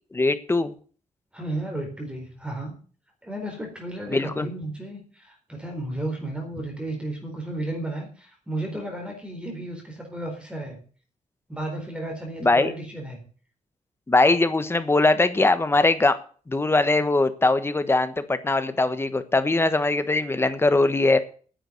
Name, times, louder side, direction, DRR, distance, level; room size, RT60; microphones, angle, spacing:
voice 1, 0.1-0.7 4.1-4.5 12.4-12.7 14.1-16.2 16.5-21.2, left 2 dB, 20° left, 11 dB, 1.2 m, -21 dB
voice 2, 1.3-2.7 3.2-10.8 11.5-13.2, right 1 dB, 10° right, 1 dB, 4.2 m, -33 dB
10.5 x 7.9 x 9.5 m, 0.41 s
wide cardioid pair, 155°, 13 cm